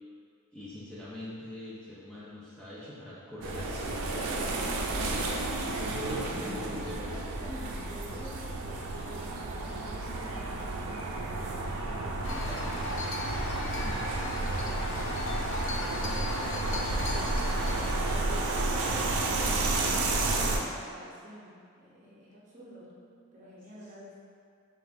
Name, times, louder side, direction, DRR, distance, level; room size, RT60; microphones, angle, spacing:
voice 1, 0.5-4.5 5.1-7.2, left 1 dB, 5° left, -10 dB, 0.6 m, -42 dB
sound 1, 3.4-20.6, right 2 dB, 75° right, 0.5 m, -32 dB
voice 2, 5.5-12.7 13.5-19.9 20.5-21.5 21.8-24.2, equal, 35° right, -7 dB, 0.9 m, -48 dB
sound 2, 12.2-17.9, left 2 dB, 55° left, 0.5 m, -36 dB
sound 3, 12.2-19.8, equal, 10° right, 1.2 m, -43 dB
5.3 x 2.5 x 3.5 m, 2.3 s
head